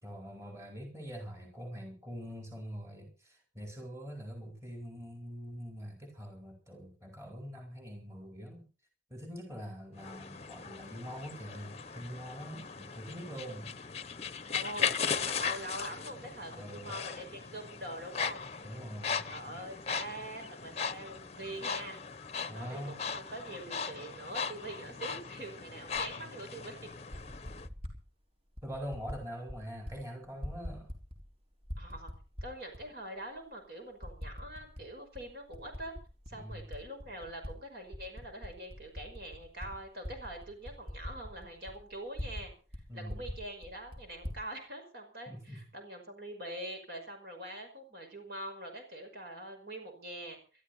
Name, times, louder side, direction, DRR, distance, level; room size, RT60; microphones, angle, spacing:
voice 1, 0.0-8.7 9.1-13.7 16.2-16.9 18.6-19.3 22.5-23.0 28.6-30.9 36.3-36.7 42.9-43.2 45.3-45.6, equal, 15° right, 2 dB, 4.2 m, -44 dB
sound 1, 10.0-27.7, left 6 dB, 35° left, 0.8 m, -38 dB
voice 2, 14.5-18.4 19.3-22.0 22.4-26.7 31.8-32.1 32.4-35.9 36.3-42.5 42.9-50.4, right 1 dB, 55° right, 4 dB, 5.5 m, -44 dB
Typing, 25.9-26.1 26.9-28.0 28.6-29.2 29.5-30.0 30.2-31.3 31.6-32.8 33.4-33.5 34.0-34.9 35.1-37.5 37.9-42.5 42.7-42.8 43.1-44.4, left 1 dB, 35° right, 4.0 m, -43 dB
22.0 x 13.0 x 4.2 m, 0.37 s
head